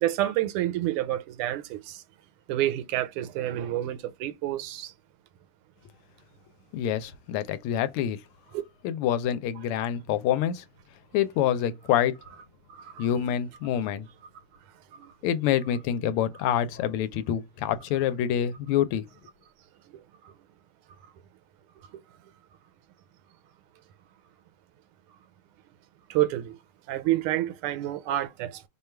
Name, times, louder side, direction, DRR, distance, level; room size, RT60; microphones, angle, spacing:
voice 1, 0.0-1.8 2.5-4.9 13.0-13.1 18.4-18.5 26.1-26.6 26.9-28.7, right 14 dB, 85° right, 1.5 m, -28 dB
voice 2, 6.7-8.2 8.8-10.6 11.1-12.1 13.0-14.1 15.2-19.0, left 10 dB, 90° left, 1.5 m, -26 dB
3.4 x 2.3 x 4.4 m
omnidirectional pair, 2.4 m